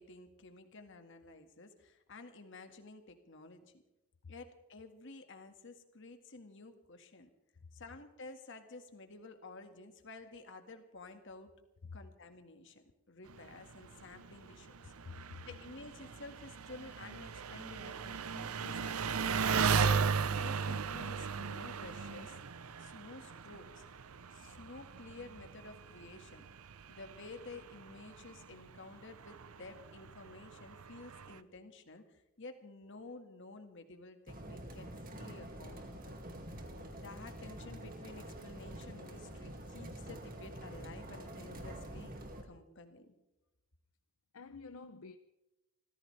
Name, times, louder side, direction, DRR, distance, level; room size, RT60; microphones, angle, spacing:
voice 1, 0.0-3.8 4.3-7.3 7.7-11.5 11.9-19.9 20.3-22.4 22.8-23.8 24.3-26.5 26.9-36.2 36.9-42.2 42.4-43.2, left 3 dB, 60° left, 1.8 m, -52 dB
Engine, 13.3-31.4, right 6 dB, 80° right, 0.7 m, -37 dB
voice 2, 15.0-15.4 44.3-45.2, left 4 dB, 75° left, 0.7 m, -48 dB
sound 1, 34.3-42.4, right 1 dB, 40° right, 2.2 m, -47 dB
28.5 x 15.0 x 3.3 m
head